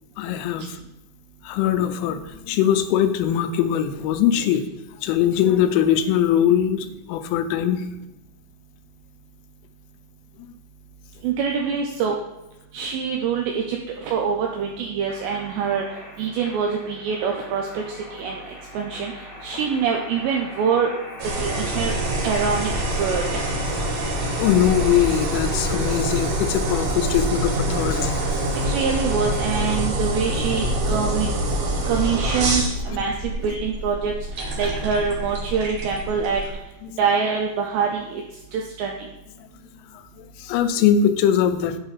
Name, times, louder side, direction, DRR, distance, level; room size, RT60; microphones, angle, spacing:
voice 1, 0.2-0.8 1.4-4.7 5.0-7.8 10.4-10.5 24.4-28.1 32.9-33.0 36.9-37.0 39.9-40.0 40.4-41.8, left 9 dB, 90° left, 9 dB, 3.2 m, -21 dB
voice 2, 11.2-12.2 12.7-15.8 16.2-17.8 18.1-18.4 18.7-19.1 19.4-20.9 21.4-21.9 22.2-22.7 23.0-23.4 28.5-31.3 31.9-34.1 34.6-36.4 37.0-38.2 38.5-39.0, right 6 dB, 90° right, 1 dB, 2.5 m, -24 dB
sound 1, 15.1-29.6, left 1 dB, 70° left, 1.0 m, -40 dB
sound 2, 21.2-36.5, right 1 dB, 70° right, 2.0 m, -25 dB
8.0 x 3.2 x 5.5 m, 0.97 s
omnidirectional pair, 5.7 m